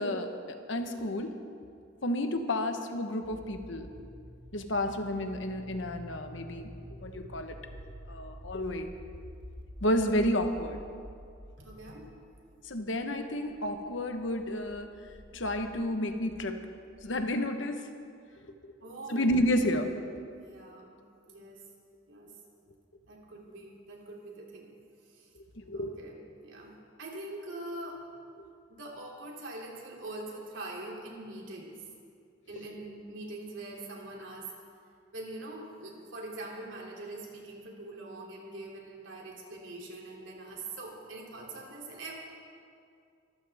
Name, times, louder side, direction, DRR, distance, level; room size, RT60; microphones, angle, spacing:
voice 1, 0.0-1.3 2.0-3.9 4.5-6.7 7.0-7.6 8.1-9.0 9.8-10.8 12.7-14.9 15.3-16.6 17.0-17.8 19.1-19.9 25.5-26.0, left 1 dB, 70° left, 6 dB, 1.2 m, -31 dB
sound 1, 3.2-17.3, equal, 25° right, 1.2 m, -49 dB
voice 2, 11.6-12.1 18.8-19.3 20.4-20.9 21.3-21.6 22.1-22.3 23.1-24.7 25.1-25.3 25.7-28.0 28.7-31.7 32.5-34.5 35.1-42.1, right 2 dB, 70° right, -2 dB, 3.1 m, -43 dB
24.5 x 14.0 x 3.6 m, 2.3 s
head